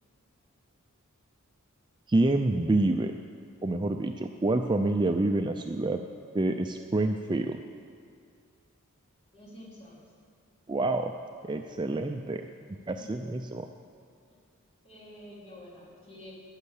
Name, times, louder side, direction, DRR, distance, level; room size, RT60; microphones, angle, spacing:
voice 1, 2.1-3.1 3.6-6.0 6.3-7.6 10.7-11.2 11.4-13.6, right 2 dB, 20° right, 5 dB, 0.4 m, -27 dB
voice 2, 9.3-10.0 12.8-13.2 14.3-14.4 14.8-16.3, left 1 dB, 25° left, -5 dB, 3.5 m, -49 dB
12.5 x 11.0 x 8.3 m, 2.2 s
head